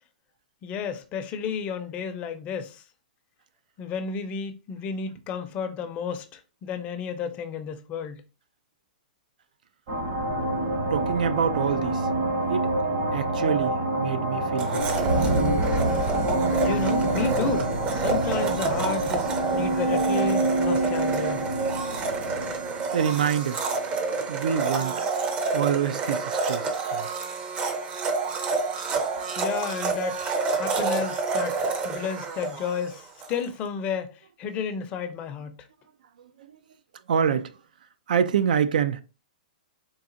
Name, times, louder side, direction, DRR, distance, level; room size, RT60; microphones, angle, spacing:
voice 1, 0.6-2.8 3.8-8.2 16.6-21.4 29.4-30.2 30.6-31.6 31.8-34.1 34.4-35.6, left 6 dB, 30° left, 0.5 m, -32 dB
sound 1, 9.9-24.0, right 2 dB, 55° right, 1.1 m, -26 dB
voice 2, 10.9-12.1 12.5-12.7 13.1-15.3 22.9-23.6 24.3-25.0 25.5-27.1 36.2-36.5 37.1-37.5 38.1-39.0, right 7 dB, 75° right, 0.3 m, -26 dB
Domestic sounds home sounds, 14.6-33.4, right 4 dB, 25° right, 0.6 m, -29 dB
3.9 x 2.4 x 2.6 m
hypercardioid pair, 130°, 5 cm